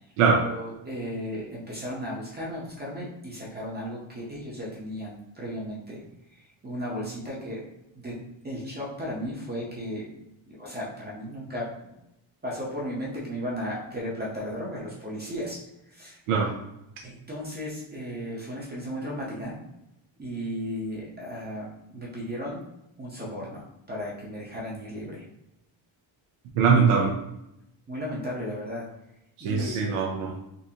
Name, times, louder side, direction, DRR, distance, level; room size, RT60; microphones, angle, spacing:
voice 1, 0.4-6.0 6.3-7.6 8.0-8.2 8.4-10.1 10.5-11.7 12.4-15.6 15.9-16.2 17.0-19.6 20.2-22.6 23.0-25.2 27.9-28.9 29.4-29.8, equal, 20° right, -5 dB, 0.7 m, -35 dB
voice 2, 26.6-27.1 29.4-30.3, right 5 dB, 90° right, -1 dB, 0.7 m, -21 dB
3.8 x 2.6 x 2.8 m, 0.85 s
cardioid pair, 165°, 49 cm